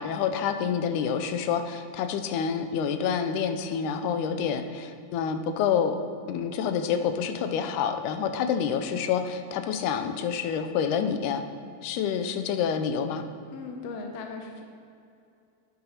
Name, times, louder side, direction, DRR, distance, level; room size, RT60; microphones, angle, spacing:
voice 1, 0.0-6.0 6.3-11.4 11.8-13.2, left 7 dB, 90° left, 8 dB, 2.1 m, -28 dB
voice 2, 13.5-14.6, left 4 dB, 75° left, 3 dB, 1.6 m, -38 dB
10.5 x 9.5 x 2.9 m, 2.5 s
omnidirectional pair, 3.5 m